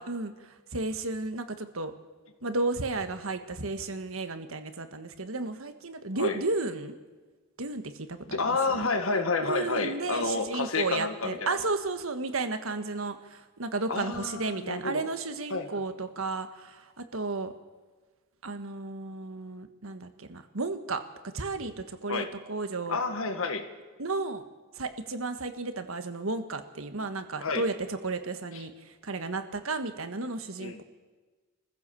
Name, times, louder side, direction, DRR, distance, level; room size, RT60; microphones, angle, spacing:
voice 1, 0.0-1.9 2.4-6.9 7.6-8.9 9.4-17.5 18.4-21.0 21.3-23.0 24.0-24.4 24.7-30.8, right 3 dB, 70° right, 8 dB, 1.6 m, -33 dB
voice 2, 8.2-11.6 13.9-15.1 15.5-15.7 22.1-22.3 22.9-23.7 27.4-27.7 28.5-28.6 30.6-30.8, left 3 dB, 70° left, 7 dB, 1.8 m, -30 dB
25.0 x 15.5 x 7.0 m, 1.3 s
head